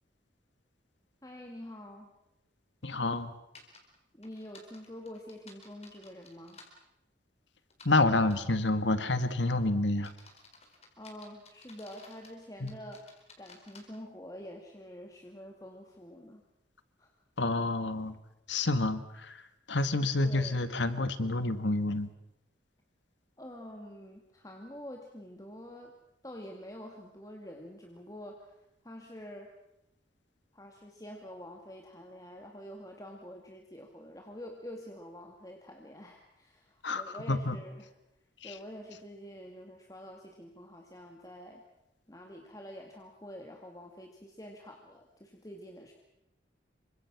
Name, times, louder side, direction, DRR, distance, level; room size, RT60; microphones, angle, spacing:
voice 1, 1.2-2.1 4.1-6.6 11.0-16.4 17.0-17.1 20.2-20.7 23.4-25.9 26.2-28.6 28.8-29.5 30.5-37.9 38.4-41.6 42.1-45.9, equal, 20° left, 2 dB, 2.1 m, -47 dB
voice 2, 2.8-3.3 7.9-10.1 12.6-12.7 17.4-18.1 18.5-19.4 19.7-22.1 36.8-37.0 37.3-37.6 38.4-38.5, left 2 dB, 80° left, 11 dB, 1.9 m, -28 dB
sound 1, 3.5-3.8 4.2-6.7 7.7-8.5 9.1-9.4 9.9-12.4 12.7-13.8, left 4 dB, 35° left, 4.3 m, -55 dB
28.5 x 24.5 x 6.2 m, 0.86 s
head